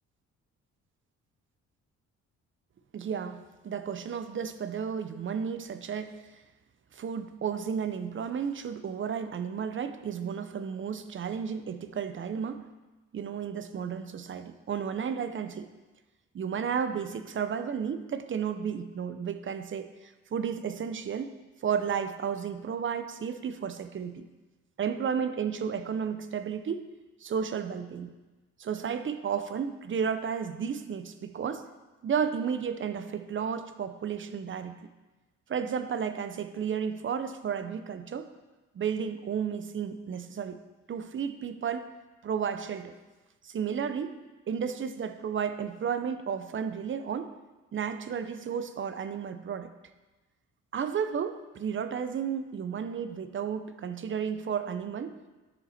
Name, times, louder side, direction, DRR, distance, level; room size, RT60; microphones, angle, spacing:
voice 1, 2.9-6.2 6.9-12.7 13.1-15.7 16.3-21.3 21.6-24.3 24.8-26.9 27.2-28.1 28.6-31.7 32.0-34.8 35.5-38.3 38.7-40.6 40.9-41.8 42.2-42.9 43.4-44.2 44.5-47.3 47.7-49.7 50.7-55.2, right 7 dB, 40° right, 10 dB, 0.7 m, -33 dB
10.0 x 6.8 x 4.3 m, 1.2 s
cardioid pair, 90°, 30 cm